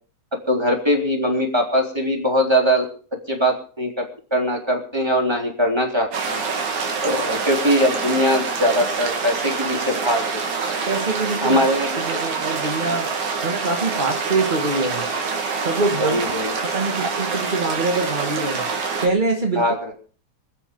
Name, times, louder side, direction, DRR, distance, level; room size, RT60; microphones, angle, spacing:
voice 1, 0.5-2.8 3.3-4.0 4.3-6.4 7.0-10.4 11.4-12.2 16.0-16.5 19.5-19.9, equal, 10° right, 2 dB, 3.3 m, -21 dB
sound 1, 6.1-19.1, right 5 dB, 80° right, 3.8 m, -26 dB
voice 2, 10.8-11.6 12.1-13.1 13.4-15.0 15.6-16.2 16.6-18.7 19.0-19.6, right 3 dB, 40° right, 4 dB, 0.7 m, -24 dB
25.0 x 9.0 x 5.3 m, 0.41 s
omnidirectional pair, 3.4 m